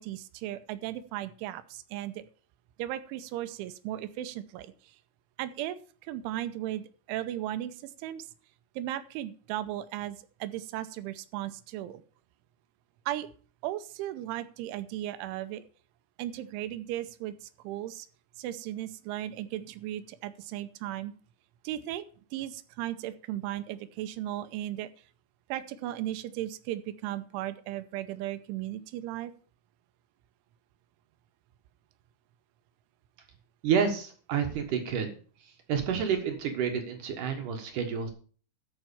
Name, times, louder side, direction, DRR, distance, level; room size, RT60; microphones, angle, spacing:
voice 1, 0.0-2.3 2.8-5.0 5.4-8.3 8.8-12.0 13.1-13.3 13.6-15.6 16.2-18.1 18.4-21.1 21.6-22.0 22.3-24.9 25.5-29.3, right 13 dB, 80° right, 13 dB, 3.0 m, -36 dB
voice 2, 33.6-35.1 35.7-38.1, right 7 dB, 65° right, 5 dB, 2.1 m, -29 dB
13.5 x 5.5 x 7.0 m, 0.41 s
omnidirectional pair, 5.7 m